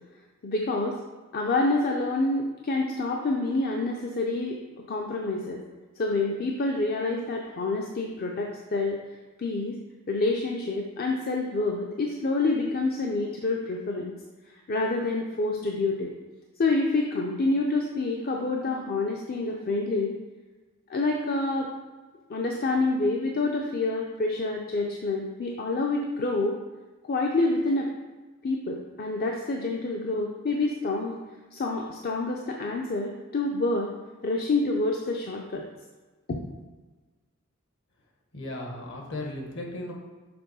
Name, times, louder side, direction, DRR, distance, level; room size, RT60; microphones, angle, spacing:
voice 1, 0.4-1.0 1.3-4.6 4.9-5.6 6.0-9.0 9.4-9.8 10.1-14.2 14.7-16.1 16.6-20.2 20.9-21.7 22.3-26.6 27.1-27.9 28.4-31.2 31.5-33.9 34.2-35.7 36.3-36.5, left 2 dB, 45° left, 0 dB, 0.6 m, -27 dB
voice 2, 38.3-39.9, left 1 dB, 60° left, 0 dB, 1.4 m, -36 dB
6.9 x 3.5 x 5.5 m, 1.3 s
head